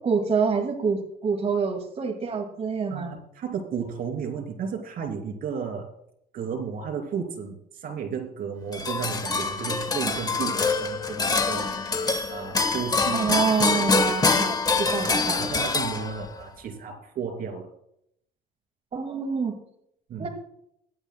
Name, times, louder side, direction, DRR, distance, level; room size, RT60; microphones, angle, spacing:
voice 1, 0.0-3.1 13.1-15.4 18.9-19.6 20.2-20.3, right 5 dB, 40° right, 1 dB, 2.0 m, -26 dB
voice 2, 2.9-5.9 6.3-11.8 12.3-13.3 14.8-17.7 20.1-20.3, right 6 dB, 60° right, 4 dB, 3.0 m, -33 dB
sound 1, 8.7-16.4, left 4 dB, 25° left, 1.0 m, -25 dB
23.0 x 8.9 x 2.2 m, 0.72 s
cardioid pair, 110°, 17 cm